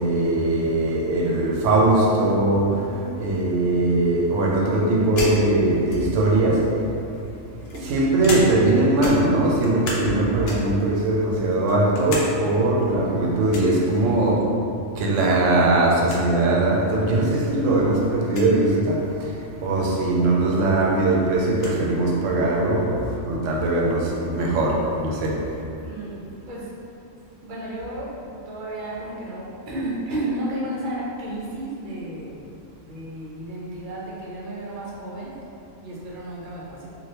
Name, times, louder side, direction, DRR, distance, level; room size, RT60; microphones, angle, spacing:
voice 1, 0.0-6.9 7.7-14.4 15.0-25.6, right 2 dB, 75° right, -2 dB, 0.9 m, -21 dB
sound 1, 5.2-6.3 7.1-8.7 9.0-10.1 10.4-10.8 11.3-12.3 12.6-12.7 13.5-13.8 15.2-15.5 15.8-16.3 17.1-17.2 18.2-18.5 20.2-20.3 20.6-21.8, left 1 dB, 65° left, 0.7 m, -32 dB
voice 2, 25.8-26.7 27.4-32.4 32.8-35.4 35.8-36.9, right 1 dB, 50° right, -6 dB, 0.7 m, -33 dB
3.2 x 2.4 x 2.8 m, 2.6 s
omnidirectional pair, 1.3 m